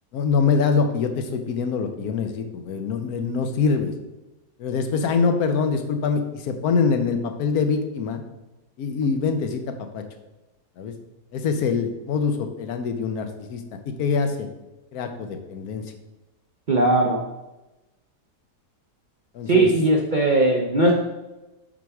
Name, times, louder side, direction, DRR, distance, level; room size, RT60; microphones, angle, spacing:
voice 1, 0.1-3.9 4.6-8.2 8.8-10.0 10.8-10.9 11.3-14.5 14.9-15.8 19.3-19.7, left 5 dB, 70° left, 7 dB, 1.1 m, -24 dB
voice 2, 16.7-17.2 19.5-20.9, right 2 dB, 50° right, -1 dB, 0.5 m, -18 dB
6.0 x 4.6 x 4.7 m, 1.0 s
omnidirectional pair, 1.7 m